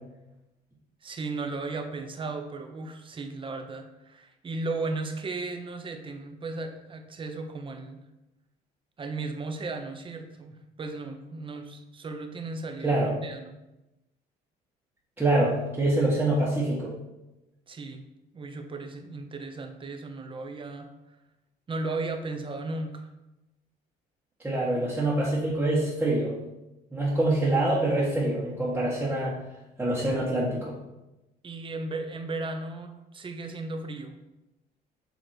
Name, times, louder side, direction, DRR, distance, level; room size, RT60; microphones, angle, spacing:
voice 1, 1.0-8.0 9.0-13.6 17.7-18.0 18.3-20.9 21.7-23.1 31.4-34.1, right 3 dB, 30° right, 5 dB, 0.9 m, -35 dB
voice 2, 15.2-16.9 24.4-26.3 26.9-29.4 29.8-30.7, right 1 dB, 10° right, -9 dB, 1.6 m, -25 dB
7.8 x 3.2 x 4.4 m, 0.97 s
cardioid pair, 110°, 17 cm